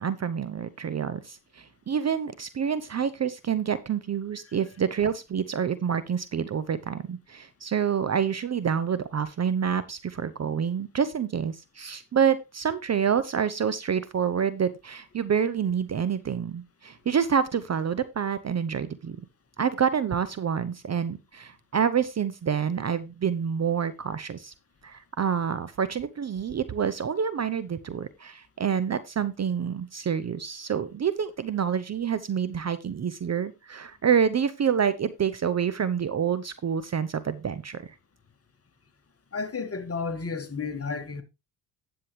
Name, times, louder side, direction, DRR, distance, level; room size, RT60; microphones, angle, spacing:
voice 1, 0.0-19.2 19.6-24.5 24.8-37.9, right 7 dB, 35° right, 0.7 m, -27 dB
voice 2, 39.3-41.2, left 4 dB, 30° left, 1.9 m, -32 dB
9.8 x 7.7 x 3.2 m
supercardioid pair, 65°, 49 cm